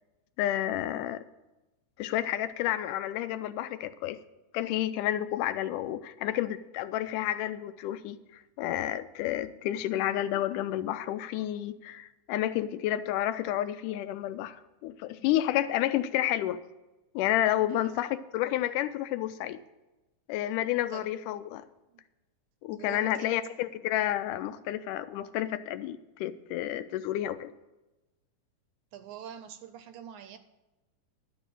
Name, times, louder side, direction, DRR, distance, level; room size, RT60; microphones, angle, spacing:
voice 1, 0.4-1.2 2.0-4.2 4.5-8.2 8.6-16.6 17.2-19.6 20.3-21.7 22.6-27.5, left 13 dB, 80° left, 12 dB, 2.0 m, -30 dB
voice 2, 22.7-23.3 24.6-24.7 28.9-30.4, right 9 dB, 80° right, 10 dB, 1.9 m, -45 dB
11.5 x 5.4 x 8.8 m, 1.0 s
omnidirectional pair, 3.8 m